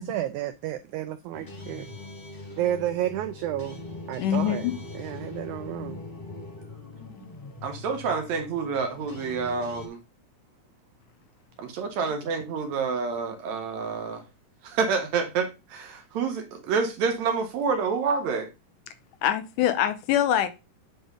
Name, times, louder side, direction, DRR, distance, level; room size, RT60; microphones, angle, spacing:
voice 1, 0.0-1.9 2.6-3.8 4.1-4.7 4.9-6.0, right 12 dB, 90° right, 1.6 m, -31 dB
sound 1, 1.3-9.9, left 2 dB, 40° left, 0.7 m, -41 dB
voice 2, 4.2-4.7 19.2-20.5, left 11 dB, 80° left, 2.2 m, -24 dB
voice 3, 7.6-10.0 11.6-14.2 14.6-18.5, right 5 dB, 70° right, 1.8 m, -28 dB
8.0 x 3.8 x 5.2 m
omnidirectional pair, 3.9 m